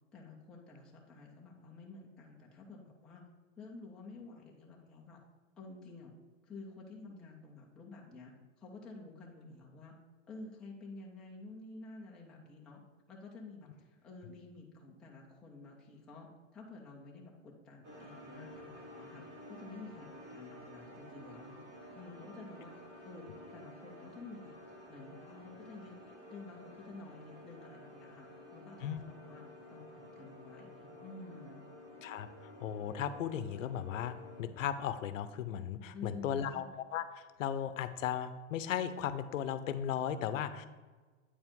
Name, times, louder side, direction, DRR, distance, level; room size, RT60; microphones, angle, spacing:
voice 1, 0.1-3.2 3.6-5.2 5.6-6.1 6.4-9.9 10.3-12.8 13.1-16.3 16.5-19.2 19.5-21.6 21.9-22.7 23.0-24.5 24.9-29.4 29.7-31.7 35.9-36.7, left 3 dB, ahead, -4 dB, 0.3 m, -50 dB
sound 1, 17.8-34.4, left 1 dB, 25° right, 1.5 m, -52 dB
voice 2, 32.0-40.7, left 9 dB, 75° left, 13 dB, 0.6 m, -36 dB
8.7 x 4.7 x 3.6 m, 1.4 s
hypercardioid pair, 135°, 39 cm